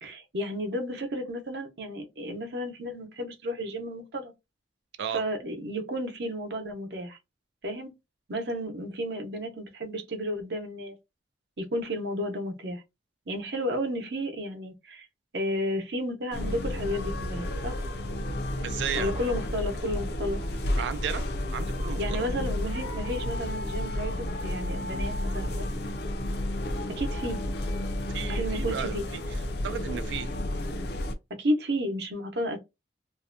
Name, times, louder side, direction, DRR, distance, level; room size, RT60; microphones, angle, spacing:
voice 1, 0.0-4.3 5.1-7.2 7.6-7.9 8.3-10.9 11.6-12.8 13.3-15.1 15.3-17.8 18.9-20.4 22.0-25.7 26.9-27.4 28.3-29.1 31.4-32.6, equal, 65° right, 0.7 m, -32 dB
sound 1, 16.3-31.1, left 1 dB, 65° left, 0.5 m, -31 dB
voice 2, 18.6-19.1 20.8-21.2 21.5-22.2 28.1-29.2 29.6-30.3, right 8 dB, 80° right, 0.3 m, -34 dB
2.6 x 2.1 x 2.5 m
head